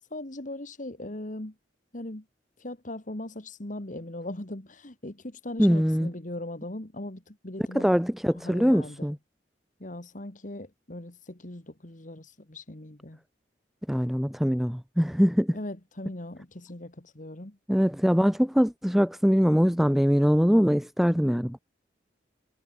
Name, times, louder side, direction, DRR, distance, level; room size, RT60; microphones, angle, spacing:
voice 1, 0.0-1.5 1.9-2.2 2.6-7.9 8.4-9.1 9.8-13.2 15.5-17.6, left 1 dB, 45° left, 2.1 m, -39 dB
voice 2, 5.6-6.1 7.7-9.2 13.9-15.6 17.7-21.6, equal, ahead, 1.3 m, -23 dB
head